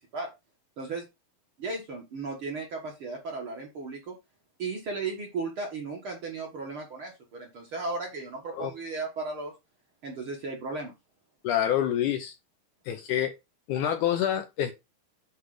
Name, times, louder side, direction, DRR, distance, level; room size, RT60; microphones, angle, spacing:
voice 1, 1.6-4.1 4.6-9.5 10.0-10.9, right 3 dB, 50° right, 1.8 m, -35 dB
voice 2, 11.4-12.3 12.9-13.3 13.7-14.7, left 10 dB, 75° left, 2.0 m, -27 dB
8.3 x 3.3 x 4.9 m
omnidirectional pair, 4.1 m